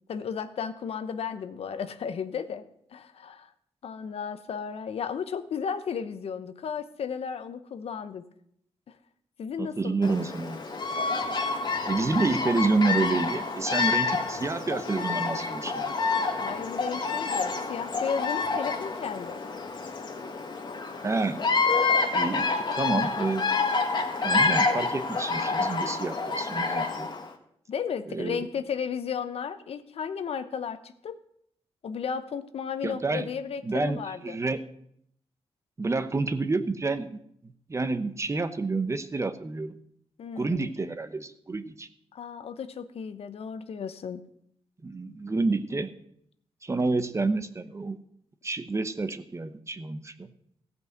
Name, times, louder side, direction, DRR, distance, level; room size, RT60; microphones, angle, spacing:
voice 1, 0.1-2.6 2.9-3.5 3.8-8.2 9.4-10.1 16.4-19.4 27.7-31.2 31.8-34.4 40.2-40.7 42.1-44.2, left 7 dB, 70° left, 11 dB, 0.9 m, -34 dB
voice 2, 9.6-10.6 11.8-15.8 21.0-21.4 22.1-23.5 24.2-27.1 28.1-28.5 32.8-33.3 33.6-34.6 35.8-37.2 37.7-39.8 40.4-41.9 44.8-45.9 46.6-48.0 48.4-50.3, right 3 dB, 30° right, 12 dB, 0.9 m, -29 dB
Bird vocalization bird call bird song, 10.0-27.3, left 4 dB, 45° left, 1.6 m, -28 dB
15.0 x 5.4 x 7.9 m, 0.70 s
cardioid pair, 95°, 11 cm